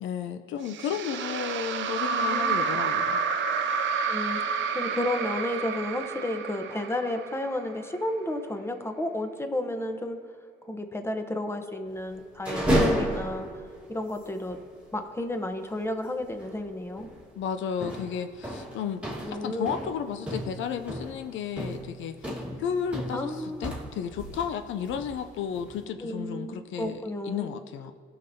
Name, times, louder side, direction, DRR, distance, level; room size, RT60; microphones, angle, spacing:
voice 1, 0.0-3.2 17.4-19.0 19.3-27.9, left 8 dB, 75° left, 8 dB, 0.5 m, -33 dB
sound 1, 0.7-7.9, right 5 dB, 70° right, 0.6 m, -29 dB
voice 2, 2.1-2.8 4.1-10.2 10.6-13.6 13.9-14.6 14.9-17.1 19.2-19.7 23.1-23.7 26.0-27.5, left 1 dB, 10° left, 6 dB, 0.8 m, -32 dB
sound 2, 12.3-13.7 14.1-14.2 14.5-14.7 16.3-16.6 17.0-17.2 17.8-24.6 24.8-25.8, equal, 5° right, 1.6 m, -32 dB
16.5 x 5.9 x 2.7 m, 2.1 s
cardioid pair, 90°, 20 cm